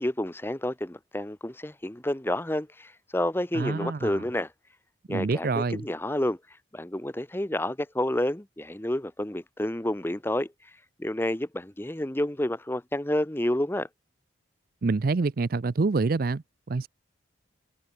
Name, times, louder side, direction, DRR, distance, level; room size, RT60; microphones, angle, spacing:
voice 1, 0.0-4.5 5.1-10.7 11.0-13.9, left 1 dB, 10° left, 0.7 m, -29 dB
voice 2, 3.5-4.2 5.1-5.8 14.8-16.9, right 3 dB, 45° right, 0.5 m, -27 dB
head